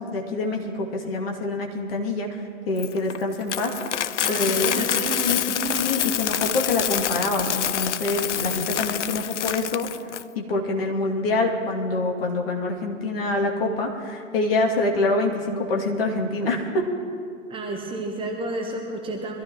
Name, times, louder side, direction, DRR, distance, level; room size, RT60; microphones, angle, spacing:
voice 1, 0.0-4.9 5.2-5.4 5.8-9.9 10.3-16.8, left 2 dB, 45° left, 0 dB, 2.6 m, -26 dB
Coin (dropping), 2.8-10.2, left 10 dB, 60° left, 0.5 m, -27 dB
voice 2, 4.2-5.7 17.5-19.4, right 2 dB, 15° right, 3 dB, 1.1 m, -31 dB
24.0 x 14.5 x 3.1 m, 2.3 s
figure-of-eight pair, 115°, 40 cm